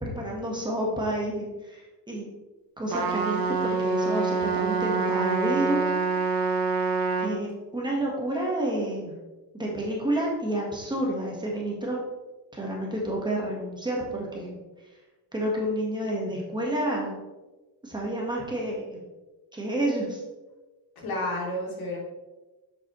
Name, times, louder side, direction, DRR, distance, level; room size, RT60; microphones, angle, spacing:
voice 1, 0.0-2.3 2.8-5.8 7.2-9.1 9.5-12.0 12.5-14.6 15.3-17.2 17.8-19.0 19.5-20.2, right 1 dB, 10° right, -3 dB, 1.3 m, -29 dB
Trumpet, 2.9-7.3, right 4 dB, 60° right, 1.1 m, -26 dB
voice 2, 21.0-22.0, left 1 dB, 65° left, -3 dB, 2.6 m, -31 dB
7.4 x 7.0 x 3.1 m, 1.1 s
cardioid pair, 165°, 40 cm